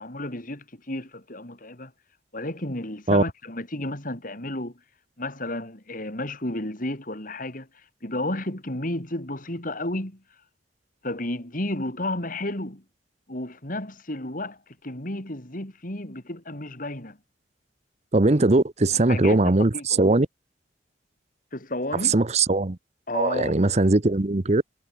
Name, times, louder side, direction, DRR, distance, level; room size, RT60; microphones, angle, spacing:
voice 1, 0.0-1.9 2.3-4.8 5.2-7.7 8.0-10.2 11.0-12.8 13.3-17.2 18.9-19.4 19.7-20.1 21.5-22.2 23.1-23.6, left 1 dB, 45° left, 3.8 m, -32 dB
voice 2, 18.1-20.3 22.1-22.8 23.1-24.6, right 2 dB, 35° right, 0.8 m, -20 dB
head